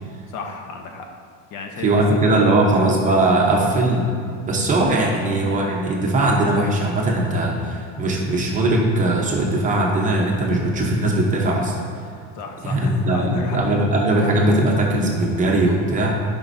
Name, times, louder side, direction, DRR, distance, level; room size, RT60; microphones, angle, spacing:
voice 1, 0.3-1.1 1.5-1.9 2.4-2.7 12.3-13.6, left 4 dB, 60° left, 3 dB, 0.9 m, -32 dB
voice 2, 1.8-4.1 4.5-11.7 12.6-16.2, right 2 dB, 25° right, -1 dB, 0.7 m, -19 dB
11.5 x 5.3 x 2.6 m, 2.2 s
cardioid pair, 175°, 34 cm